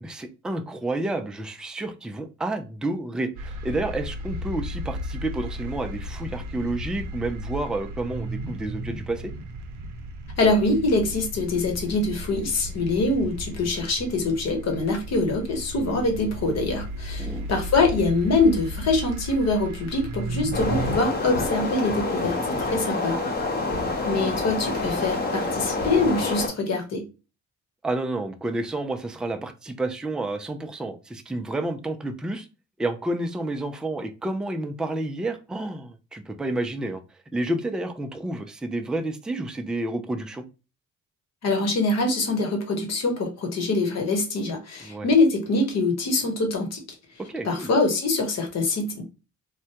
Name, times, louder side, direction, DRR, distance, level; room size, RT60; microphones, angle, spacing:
voice 1, 0.0-9.3 17.2-17.5 22.3-23.4 27.8-32.5 32.8-40.4 44.8-45.1 47.2-47.7, right 2 dB, 5° right, 0.3 m, -30 dB
sound 1, 3.4-21.0, equal, 75° right, 0.6 m, -34 dB
voice 2, 10.4-23.2 24.1-27.1 41.4-46.8 47.4-49.0, left 3 dB, 60° left, 1.1 m, -24 dB
sound 2, 20.5-26.5, left 2 dB, 30° left, 0.9 m, -27 dB
3.3 x 2.1 x 2.8 m
cardioid pair, 90°, 30 cm